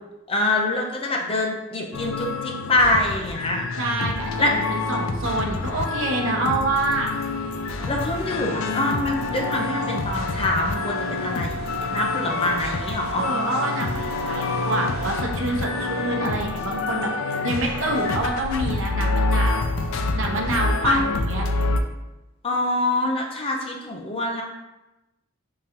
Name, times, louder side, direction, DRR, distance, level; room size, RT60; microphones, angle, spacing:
voice 1, 0.3-3.6 4.4-4.5 7.9-13.2 20.8-21.0 22.4-24.4, left 2 dB, 25° left, 1 dB, 0.6 m, -25 dB
sound 1, 1.9-21.8, left 3 dB, 70° left, 0.4 m, -27 dB
voice 2, 3.8-7.1 13.2-19.8 20.2-21.4, right 2 dB, 65° right, 1 dB, 0.8 m, -27 dB
sound 2, 7.8-15.2, right 2 dB, 50° left, 0.9 m, -36 dB
4.9 x 3.8 x 2.9 m, 0.99 s
head